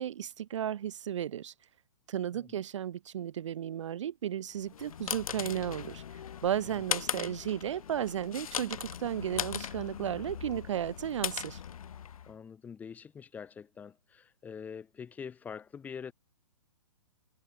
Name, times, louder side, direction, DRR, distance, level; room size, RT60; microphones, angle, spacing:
voice 1, 0.0-1.5 2.1-6.0 6.4-11.6, right 10 dB, 55° right, 0.8 m, -34 dB
sound 1, 4.6-12.3, left 9 dB, 75° left, 0.8 m, -39 dB
voice 2, 12.3-16.1, left 6 dB, 10° left, 1.8 m, -45 dB
hypercardioid pair, 165°, 18 cm